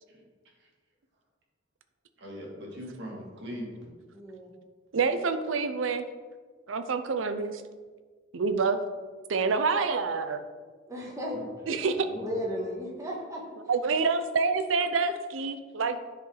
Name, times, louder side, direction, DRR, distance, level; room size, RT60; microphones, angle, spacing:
voice 1, 2.2-3.9 11.3-12.4, equal, 65° right, -2 dB, 2.0 m, -41 dB
voice 2, 4.1-4.5 10.9-11.3 12.2-13.4, equal, 15° right, -3 dB, 1.5 m, -35 dB
voice 3, 4.9-6.0 6.7-7.6 8.3-8.8 9.3-10.4 11.7-12.0 13.7-16.0, right 4 dB, 85° right, 9 dB, 0.6 m, -27 dB
10.5 x 4.5 x 3.9 m, 1.5 s
head